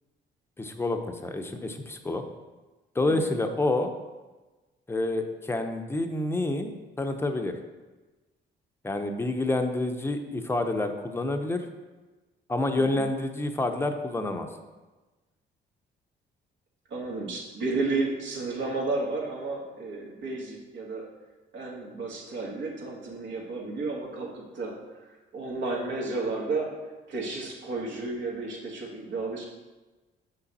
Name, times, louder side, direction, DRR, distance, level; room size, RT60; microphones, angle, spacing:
voice 1, 0.6-2.2 2.9-3.9 4.9-7.6 8.8-11.7 12.5-14.5, left 2 dB, 10° left, 5 dB, 0.7 m, -28 dB
voice 2, 12.7-13.0 16.9-21.0 21.5-24.7 25.3-26.7 27.1-29.4, right 3 dB, 65° right, -2 dB, 1.7 m, -32 dB
6.2 x 5.7 x 4.1 m, 1.2 s
cardioid pair, 90°, 20 cm